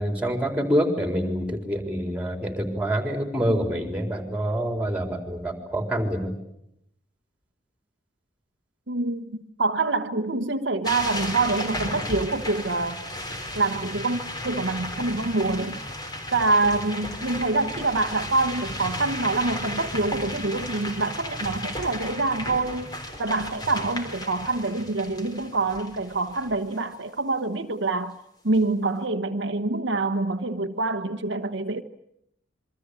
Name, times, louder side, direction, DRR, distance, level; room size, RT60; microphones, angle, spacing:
voice 1, 0.0-6.3, equal, 5° right, 4.1 m, -26 dB
voice 2, 8.9-13.0 13.5-15.8 16.3-22.9 23.2-28.2 28.4-31.8, right 3 dB, 70° right, 1.1 m, -26 dB
sound 1, 10.8-26.8, left 1 dB, 20° left, 3.8 m, -34 dB
27.0 x 24.0 x 8.3 m
head